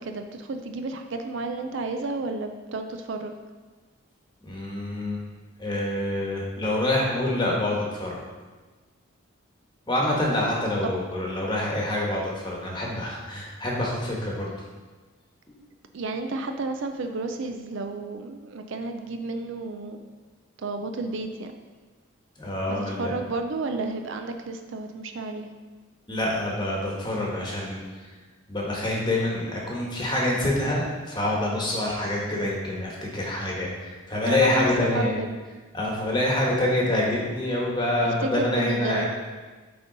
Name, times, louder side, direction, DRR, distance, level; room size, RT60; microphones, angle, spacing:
voice 1, 0.0-3.3 10.8-11.0 15.9-20.0 20.6-21.5 22.7-25.5 34.2-35.4 38.0-39.1, right 3 dB, 60° right, 6 dB, 0.4 m, -32 dB
voice 2, 4.4-5.2 5.6-8.2 9.9-14.5 15.5-15.6 22.4-23.1 26.1-28.1 28.5-35.1 35.7-39.1, left 1 dB, 20° left, -3 dB, 1.2 m, -26 dB
7.7 x 3.8 x 3.9 m, 1.3 s
head